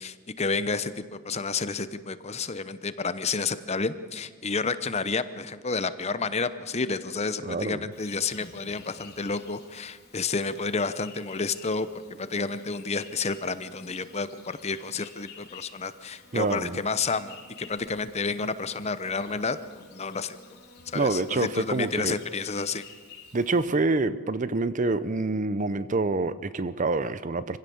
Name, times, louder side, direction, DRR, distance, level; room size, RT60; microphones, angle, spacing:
voice 1, 0.0-19.6 19.9-20.4 20.9-22.8, left 4 dB, 30° left, 0.8 m, -30 dB
voice 2, 7.4-7.8 16.3-16.8 20.9-22.2 23.3-27.6, right 3 dB, 35° right, 0.6 m, -26 dB
Insect, 7.9-23.7, left 4 dB, 50° left, 3.9 m, -51 dB
25.5 x 16.5 x 7.1 m
head